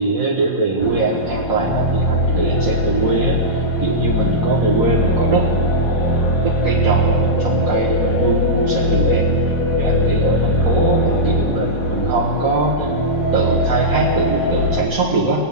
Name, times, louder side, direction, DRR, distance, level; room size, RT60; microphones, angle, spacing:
voice 1, 0.0-6.2 6.4-9.3 9.8-12.9 13.3-15.5, right 3 dB, 80° right, -6 dB, 1.7 m, -21 dB
sound 1, 0.8-14.9, equal, 90° left, 2.0 m, -20 dB
21.5 x 8.8 x 3.5 m, 2.2 s
omnidirectional pair, 1.4 m